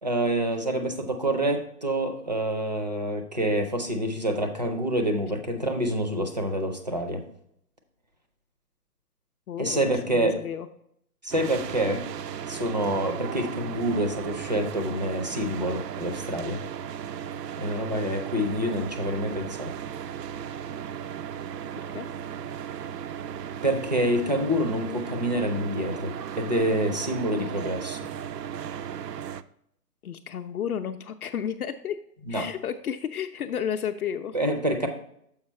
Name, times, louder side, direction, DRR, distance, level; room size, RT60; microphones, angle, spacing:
voice 1, 0.0-7.2 9.6-10.4 11.2-12.0 12.4-16.6 17.6-19.7 23.6-28.0 32.3-32.5 34.3-34.9, right 1 dB, 30° right, 6 dB, 0.4 m, -27 dB
voice 2, 9.5-9.8 10.0-10.7 21.9-22.1 30.0-32.0 32.3-34.4, left 8 dB, 65° left, 6 dB, 0.6 m, -32 dB
sound 1, 11.3-29.4, right 9 dB, 90° right, 0.6 m, -36 dB
7.2 x 4.8 x 4.3 m, 0.72 s
hypercardioid pair, 160°, 47 cm